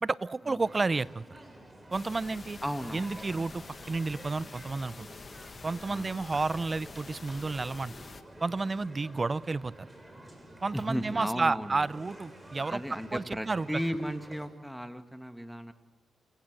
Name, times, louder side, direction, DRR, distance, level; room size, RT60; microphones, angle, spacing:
voice 1, 0.0-1.2 1.9-2.6 2.9-5.1 5.6-7.9 8.4-9.9 10.6-12.8 13.1-13.7, right 3 dB, 35° right, 19 dB, 0.7 m, -31 dB
sound 1, 0.6-14.5, right 1 dB, 20° right, 6.8 m, -50 dB
sound 2, 1.9-8.2, left 4 dB, 45° left, 1.5 m, -47 dB
voice 2, 2.6-3.4 5.9-6.1 10.7-11.9 12.7-15.7, equal, ahead, 7 dB, 2.2 m, -35 dB
29.0 x 16.5 x 7.8 m, 1.0 s
supercardioid pair, 45°, 0 cm